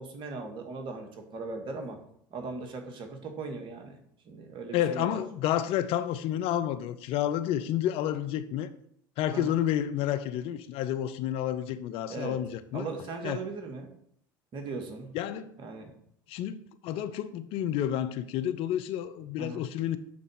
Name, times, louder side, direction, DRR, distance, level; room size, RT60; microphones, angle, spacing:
voice 1, 0.0-2.0 2.3-4.0 4.2-5.2 9.3-9.6 12.1-12.4 12.7-13.9 14.5-15.1 15.6-15.9 19.4-19.6, right 3 dB, 50° right, 1.9 m, -38 dB
voice 2, 4.7-8.7 9.2-12.9 13.2-13.4 15.1-15.5 16.3-16.6 16.8-20.0, left 11 dB, 55° left, 0.6 m, -30 dB
8.7 x 4.0 x 5.6 m
hypercardioid pair, 70°, 11 cm